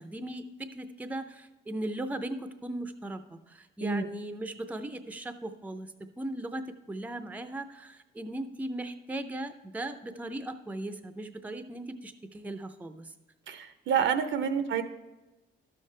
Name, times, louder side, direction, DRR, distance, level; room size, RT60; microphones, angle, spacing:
voice 1, 0.0-13.1, right 1 dB, 10° right, 9 dB, 0.6 m, -38 dB
voice 2, 13.5-14.8, right 7 dB, 70° right, 10 dB, 0.7 m, -28 dB
12.0 x 6.6 x 3.3 m, 1.1 s
cardioid pair, 90°, 20 cm